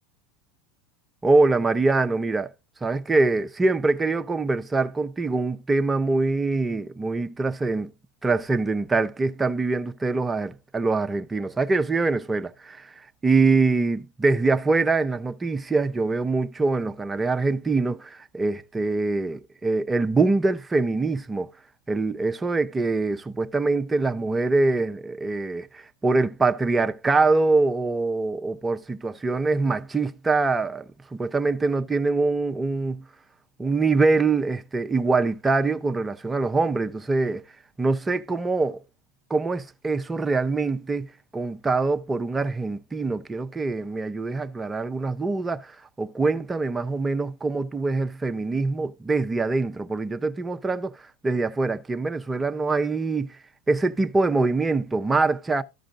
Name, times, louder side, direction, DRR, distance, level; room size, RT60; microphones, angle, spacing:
voice 1, 1.2-2.5 2.8-7.9 8.2-12.9 13.2-21.5 21.9-33.0 33.6-37.4 37.8-38.8 39.3-41.1 41.3-50.9 51.2-53.4 53.7-55.6, right 3 dB, 15° right, 0.7 m, -24 dB
14.0 x 5.1 x 2.5 m
supercardioid pair, 120°, 0 cm